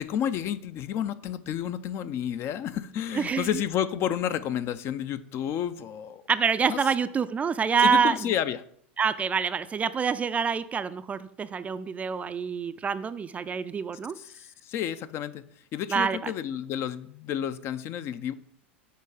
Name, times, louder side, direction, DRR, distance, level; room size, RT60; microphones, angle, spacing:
voice 1, 0.0-6.2 6.7-6.8 7.8-8.6 14.2-15.4 15.7-18.3, left 10 dB, 45° left, 14 dB, 0.4 m, -30 dB
voice 2, 3.1-3.5 6.3-8.2 9.0-14.2 15.9-16.3, right 6 dB, 20° right, 13 dB, 0.3 m, -26 dB
6.7 x 4.4 x 4.9 m, 0.65 s
hypercardioid pair, 90°, 6 cm